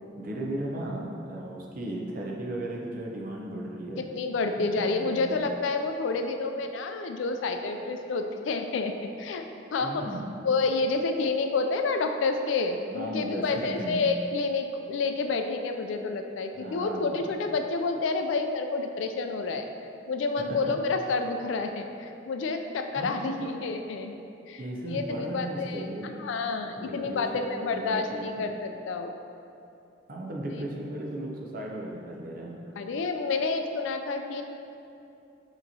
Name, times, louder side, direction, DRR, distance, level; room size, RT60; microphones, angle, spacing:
voice 1, 0.2-4.0 4.6-5.3 9.8-10.3 12.9-14.1 16.5-17.2 23.0-23.5 24.6-26.1 26.8-28.5 30.1-32.6, right 1 dB, 50° right, -2 dB, 0.6 m, -36 dB
voice 2, 4.0-9.4 9.7-10.0 10.4-19.6 20.1-24.1 24.5-29.1 32.8-34.4, left 3 dB, 85° left, 6 dB, 0.3 m, -29 dB
6.6 x 3.0 x 2.7 m, 2.7 s
head